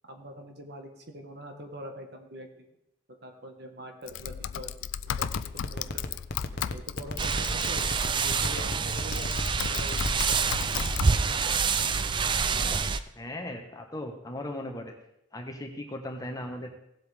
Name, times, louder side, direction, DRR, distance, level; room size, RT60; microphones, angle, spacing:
voice 1, 0.0-2.7 3.2-6.0 6.7-10.8 11.3-11.5, equal, 55° right, 4 dB, 1.5 m, -44 dB
Typing, 4.1-8.3 8.9-11.1, left 9 dB, 85° left, 0.4 m, -35 dB
sound 1, 5.2-10.5, left 2 dB, 55° left, 0.9 m, -33 dB
sound 2, 7.2-13.0, right 5 dB, 25° right, 0.4 m, -27 dB
voice 2, 13.2-14.9 15.3-16.7, left 1 dB, 20° left, 3 dB, 1.1 m, -37 dB
16.5 x 7.9 x 3.5 m, 0.79 s
head